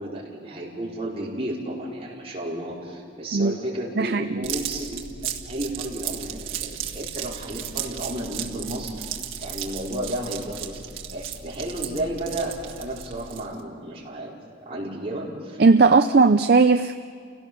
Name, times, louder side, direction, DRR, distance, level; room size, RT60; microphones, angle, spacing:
voice 1, 0.0-8.9 9.4-10.8 11.1-14.3 14.6-15.6, right 1 dB, 30° right, -5 dB, 4.8 m, -32 dB
sound 1, 4.4-13.6, right 8 dB, 85° right, 1.7 m, -35 dB
voice 2, 15.6-17.0, right 4 dB, 50° right, 9 dB, 0.5 m, -17 dB
29.5 x 17.5 x 7.0 m, 2.1 s
head